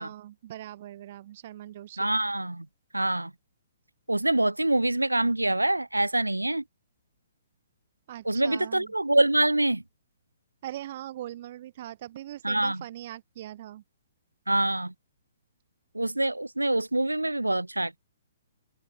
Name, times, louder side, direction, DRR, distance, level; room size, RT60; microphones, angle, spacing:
voice 1, 0.0-2.1 8.1-8.9 10.6-13.8, right 13 dB, 45° right, 2.9 m, -41 dB
voice 2, 2.0-2.7 2.9-3.3 4.1-6.6 8.3-9.8 12.4-12.8 14.5-14.9 15.9-18.0, right 1 dB, 85° right, 0.5 m, -25 dB
figure-of-eight pair, 125°, 0 cm